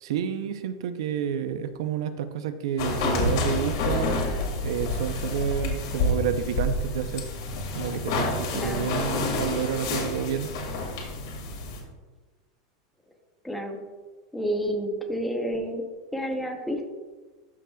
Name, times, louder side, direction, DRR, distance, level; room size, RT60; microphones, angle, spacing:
voice 1, 0.0-4.2 4.6-7.3 7.7-10.5, right 8 dB, 70° right, 10 dB, 0.6 m, -30 dB
sound 1, 2.8-11.8, left 2 dB, 60° left, 2.0 m, -28 dB
voice 2, 8.5-8.9 13.4-13.8 14.3-16.9, equal, 5° left, 2 dB, 0.7 m, -30 dB
13.0 x 5.8 x 2.3 m, 1.3 s
supercardioid pair, 175°, 3 cm